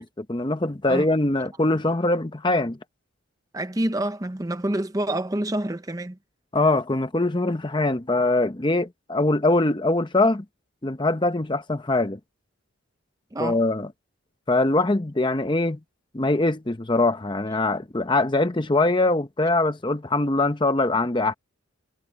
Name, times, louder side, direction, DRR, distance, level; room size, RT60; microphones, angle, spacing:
voice 1, 0.0-2.8 6.5-10.4 10.8-12.2 13.4-13.9 14.5-15.8 16.1-21.3, left 2 dB, 20° left, 0.7 m, -22 dB
voice 2, 3.5-6.2 13.3-13.6, right 1 dB, 15° right, 0.7 m, -27 dB
head